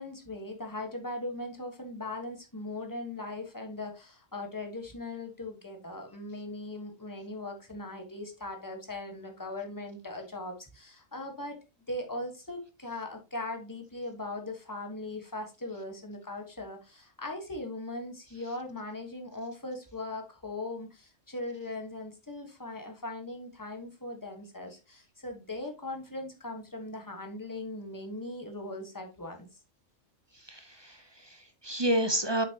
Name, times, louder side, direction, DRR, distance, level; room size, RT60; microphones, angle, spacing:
voice 1, 0.0-11.6 11.9-29.5, left 2 dB, 15° left, 3 dB, 1.4 m, -39 dB
voice 2, 30.3-32.5, right 1 dB, 25° right, 8 dB, 0.7 m, -30 dB
7.3 x 6.1 x 2.9 m, 0.28 s
omnidirectional pair, 1.4 m